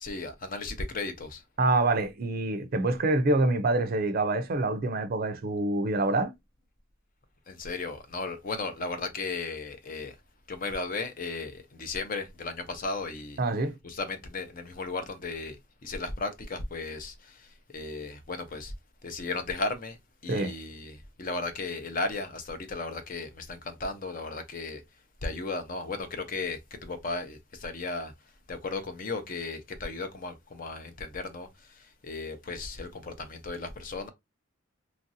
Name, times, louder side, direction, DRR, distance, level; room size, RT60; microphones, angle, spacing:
voice 1, 0.0-1.4 7.5-10.1 10.5-13.4 13.8-15.6 15.8-17.4 17.7-18.7 19.0-20.0 20.2-24.8 25.2-28.1 28.5-31.5 32.0-34.1, left 3 dB, 40° left, 0.6 m, -35 dB
voice 2, 1.6-6.3 13.4-13.7 20.3-20.5, right 2 dB, 45° right, 0.4 m, -26 dB
3.0 x 2.5 x 2.6 m
head